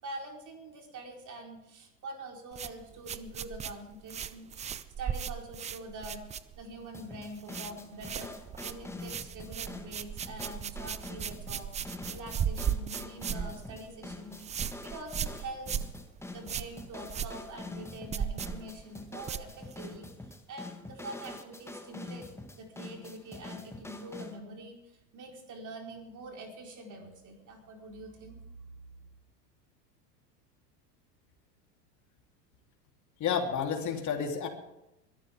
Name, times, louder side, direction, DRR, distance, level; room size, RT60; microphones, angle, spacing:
voice 1, 0.0-6.2 6.6-8.3 8.6-11.7 12.1-15.9 16.3-22.3 22.6-28.4, right 1 dB, 35° right, 1 dB, 4.4 m, -45 dB
sound 1, 2.5-6.9 7.1-7.7 8.0-20.0, right 8 dB, 15° right, 0.4 m, -37 dB
sound 2, 6.9-24.4, left 2 dB, 5° left, 1.5 m, -45 dB
voice 2, 33.2-34.5, left 7 dB, 35° left, 2 dB, 3.5 m, -30 dB
22.5 x 13.0 x 3.6 m, 0.88 s
hypercardioid pair, 85°, 49 cm